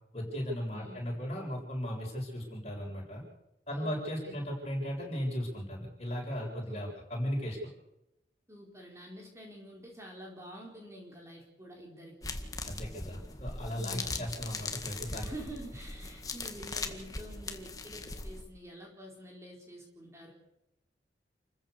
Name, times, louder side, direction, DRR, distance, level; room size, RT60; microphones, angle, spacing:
voice 1, 0.1-3.2 3.7-7.6 12.6-15.3, equal, 35° left, -1 dB, 7.4 m, -36 dB
voice 2, 0.7-1.1 3.7-4.4 6.7-7.0 8.5-12.3 13.7-14.3 15.0-20.3, right 1 dB, 15° right, 0 dB, 4.4 m, -48 dB
sound 1, 12.2-18.4, left 3 dB, 20° left, 1.9 m, -40 dB
29.0 x 15.0 x 6.8 m, 0.89 s
head